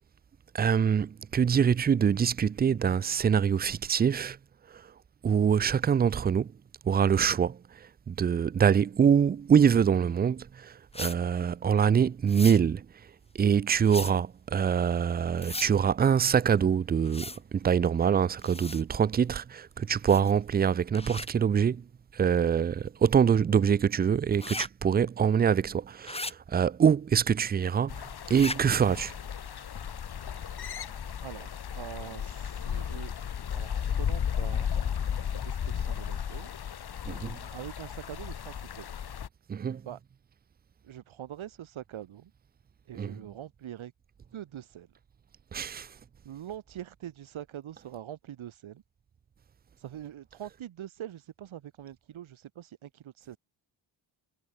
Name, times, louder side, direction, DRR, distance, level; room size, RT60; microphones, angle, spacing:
voice 1, 0.5-4.4 5.2-6.5 6.8-7.6 8.1-12.9 13.3-21.8 22.1-29.1 37.1-37.4 39.5-39.8 42.9-43.2 45.5-45.9, right 7 dB, 25° right, 0.3 m, -25 dB
sound 1, 10.9-11.2 12.3-12.6 13.8-14.1 15.4-15.7 17.1-17.4 18.4-18.8 20.1-20.4 20.9-21.3 24.3-24.7 26.0-26.3 28.3-28.6, left 2 dB, 10° left, 2.0 m, -37 dB
sound 2, 27.9-39.3, left 8 dB, 50° left, 1.7 m, -34 dB
voice 2, 31.2-33.1 33.5-36.5 37.5-38.9 39.9-40.0 40.8-42.3 42.9-43.9 44.3-44.9 46.2-48.8 49.8-53.4, right 11 dB, 75° right, 2.2 m, -43 dB
cardioid pair, 80°, 48 cm